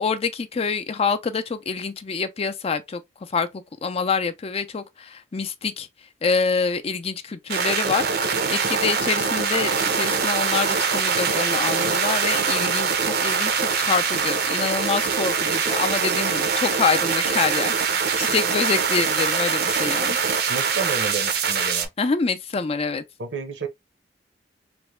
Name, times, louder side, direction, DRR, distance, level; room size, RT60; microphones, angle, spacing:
voice 1, 0.0-3.5 3.8-5.9 6.2-20.2 22.0-23.0, left 5 dB, 35° left, 0.4 m, -26 dB
sound 1, 7.5-21.9, right 6 dB, 60° right, 0.5 m, -23 dB
voice 2, 20.5-21.9 23.2-23.7, right 4 dB, 90° right, 0.8 m, -31 dB
3.3 x 2.1 x 3.0 m
head